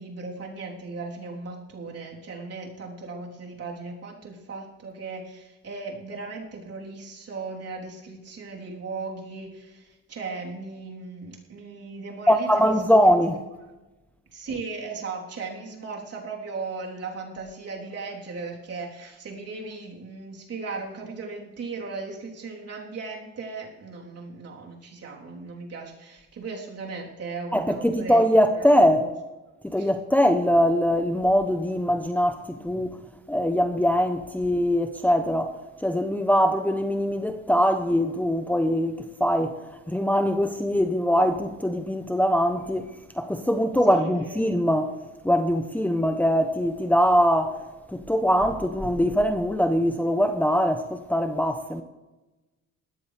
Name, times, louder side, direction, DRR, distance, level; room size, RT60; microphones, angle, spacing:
voice 1, 0.0-12.9 14.3-28.2 28.5-29.1 29.8-29.9 43.9-44.5, right 4 dB, 55° right, 3.8 m, -37 dB
voice 2, 12.3-13.4 27.5-29.1 29.6-33.0 33.3-44.9 45.2-47.6 47.9-51.8, equal, 5° left, 0.9 m, -22 dB
19.0 x 14.0 x 3.4 m
cardioid pair, 90°, 30 cm